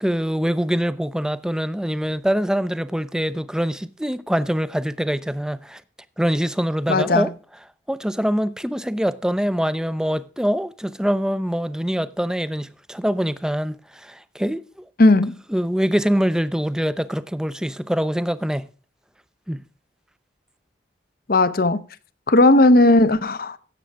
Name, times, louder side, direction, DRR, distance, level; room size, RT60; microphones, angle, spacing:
voice 1, 0.0-5.8 6.2-7.3 7.9-14.6 15.5-18.7 19.5-19.6, equal, 5° right, 0.5 m, -24 dB
voice 2, 6.9-7.3 15.0-15.4 21.3-21.8 22.3-23.6, left 2 dB, 50° left, 0.7 m, -16 dB
16.5 x 7.6 x 3.4 m
head